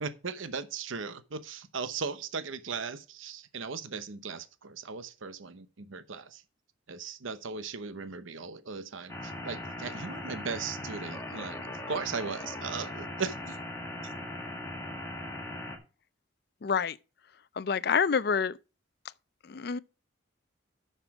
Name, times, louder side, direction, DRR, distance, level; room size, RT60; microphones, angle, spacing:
voice 1, 0.0-6.4 6.9-11.6 11.9-13.6, right 5 dB, 80° right, 0.8 m, -37 dB
sound 1, 9.1-15.8, left 1 dB, 15° left, 1.7 m, -39 dB
voice 2, 16.6-17.0 17.6-18.6 19.5-19.8, left 6 dB, 50° left, 0.4 m, -27 dB
9.5 x 6.7 x 4.9 m
head